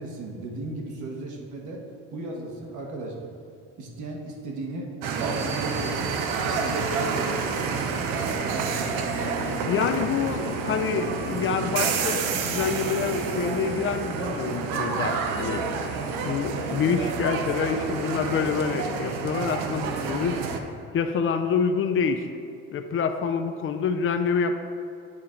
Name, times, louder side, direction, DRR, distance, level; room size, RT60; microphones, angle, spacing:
voice 1, 0.0-1.8 2.1-3.2 3.8-4.9 5.1-6.0 6.4-7.9, right 2 dB, 65° right, 0 dB, 1.4 m, -36 dB
sound 1, 5.0-20.6, right 5 dB, 90° right, 0.7 m, -29 dB
voice 2, 9.7-15.6 16.2-20.4 20.9-22.3 22.7-24.5, left 6 dB, 40° left, 8 dB, 0.5 m, -27 dB
8.8 x 4.4 x 3.8 m, 2.5 s
cardioid pair, 105°, 32 cm